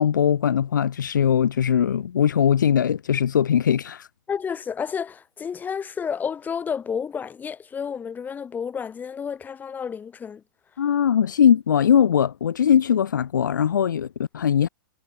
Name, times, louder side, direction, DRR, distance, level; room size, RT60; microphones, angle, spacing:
voice 1, 0.0-4.1 10.8-14.7, left 8 dB, 60° left, 1.8 m, -20 dB
voice 2, 4.3-10.4, left 7 dB, 15° left, 5.9 m, -31 dB
figure-of-eight pair, 105°, 12 cm